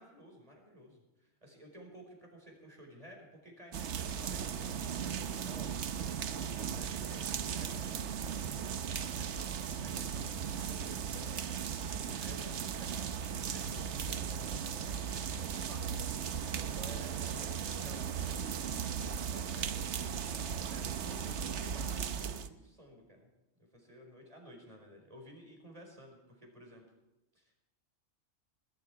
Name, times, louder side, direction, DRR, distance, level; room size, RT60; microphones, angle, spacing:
voice 1, 0.0-11.4 11.6-23.3 23.6-26.8 27.3-27.5, equal, 25° right, 1 dB, 5.0 m, -54 dB
sound 1, 3.7-22.5, right 7 dB, 65° right, 1.1 m, -37 dB
21.5 x 12.5 x 4.7 m, 1.0 s
omnidirectional pair, 1.3 m